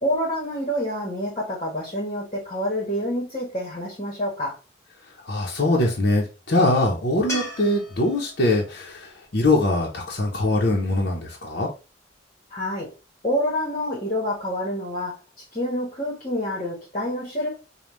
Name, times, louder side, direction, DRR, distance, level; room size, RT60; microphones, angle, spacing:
voice 1, 0.0-4.5 12.5-12.9 13.2-15.2 15.5-17.5, equal, 30° left, 1.2 m, -27 dB
voice 2, 5.3-11.7, left 2 dB, 55° left, 0.8 m, -22 dB
sound 1, 7.3-10.5 13.8-13.9, left 1 dB, 15° left, 1.4 m, -38 dB
5.2 x 2.3 x 3.0 m
head